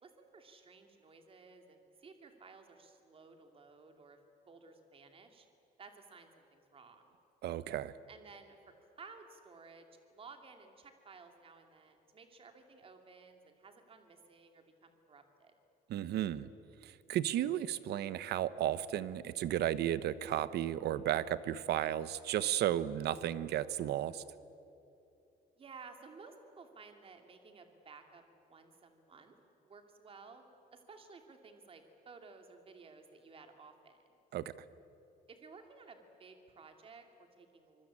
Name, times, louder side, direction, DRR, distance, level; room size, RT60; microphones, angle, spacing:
voice 1, 0.0-4.2 4.5-5.5 5.8-7.2 8.1-8.6 9.0-15.5 25.6-29.3 29.6-34.0 35.3-37.9, right 4 dB, 30° right, 5 dB, 2.7 m, -56 dB
voice 2, 7.4-7.9 15.9-16.5 16.8-24.2 34.3-34.5, right 12 dB, 70° right, 16 dB, 1.0 m, -34 dB
25.0 x 23.5 x 8.7 m, 2.9 s
cardioid pair, 155°, 18 cm